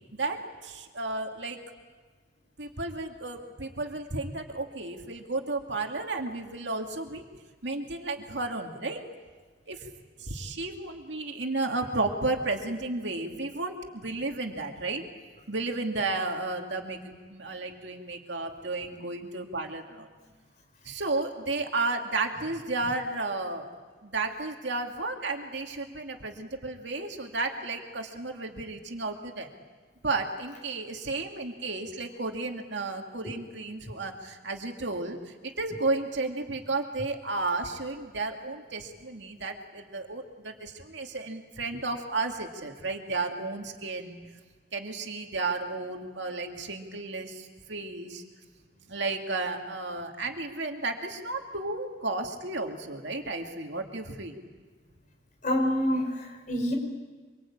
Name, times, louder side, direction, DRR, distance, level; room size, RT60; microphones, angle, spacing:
voice 1, 0.1-1.6 2.6-7.2 7.6-9.0 9.7-9.9 10.2-15.0 15.5-20.1 20.8-23.7 24.0-29.5 30.0-44.2 44.7-48.2 48.9-54.4, right 3 dB, 65° right, 3 dB, 2.4 m, -33 dB
voice 2, 55.4-56.7, equal, 45° left, 1 dB, 5.8 m, -27 dB
26.0 x 24.0 x 8.8 m, 1.4 s
head